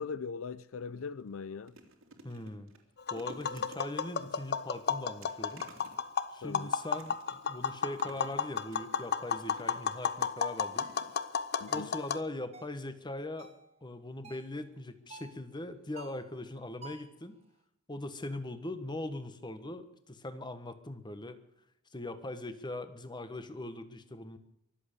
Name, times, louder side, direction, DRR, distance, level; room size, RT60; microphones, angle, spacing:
voice 1, 0.0-1.7 6.4-6.7 11.6-11.9, left 5 dB, 80° left, 0.6 m, -40 dB
sound 1, 0.7-0.8 1.2-10.0 10.7-11.5 11.8-12.0 12.2-12.3, right 2 dB, 80° right, 3.0 m, -56 dB
voice 2, 2.2-2.7 3.1-5.7 6.3-10.9 11.7-13.5 13.8-17.3 17.9-21.4 21.9-24.4, left 2 dB, 20° left, 1.5 m, -41 dB
Tap, 3.0-12.2, left 6 dB, 55° left, 0.8 m, -33 dB
sound 2, 10.8-11.0 11.7-11.9 12.5-12.8 13.4-13.6 14.2-14.5 15.1-15.4 16.0-16.3 16.8-17.2, right 3 dB, 30° right, 1.9 m, -51 dB
23.5 x 8.2 x 6.8 m
head